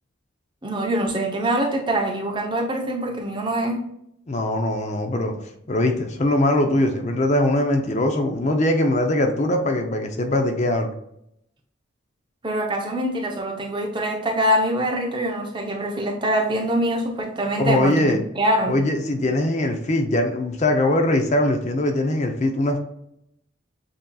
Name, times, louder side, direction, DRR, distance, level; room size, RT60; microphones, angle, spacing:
voice 1, 0.6-3.8 12.4-18.8, right 1 dB, 25° right, 1 dB, 0.7 m, -24 dB
voice 2, 4.3-5.3 5.7-10.9 17.6-18.2 18.7-22.8, left 1 dB, 35° left, 4 dB, 0.5 m, -21 dB
7.7 x 2.8 x 2.3 m, 0.76 s
head